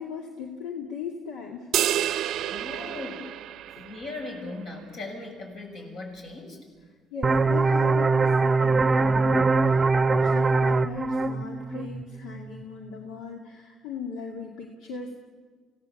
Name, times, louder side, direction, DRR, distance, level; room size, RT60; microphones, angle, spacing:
voice 1, 0.0-1.7 2.8-2.9 3.8-3.9 7.1-15.1, left 5 dB, 85° left, 1 dB, 2.2 m, -38 dB
sound 1, 1.7-4.3, right 11 dB, 75° right, 0.6 m, -29 dB
voice 2, 2.5-3.3 3.8-6.6, left 2 dB, 65° left, 2 dB, 6.6 m, -38 dB
sound 2, 7.2-12.6, right 3 dB, 25° right, 0.7 m, -22 dB
26.0 x 17.0 x 8.3 m, 1.5 s
cardioid pair, 105°, 0 cm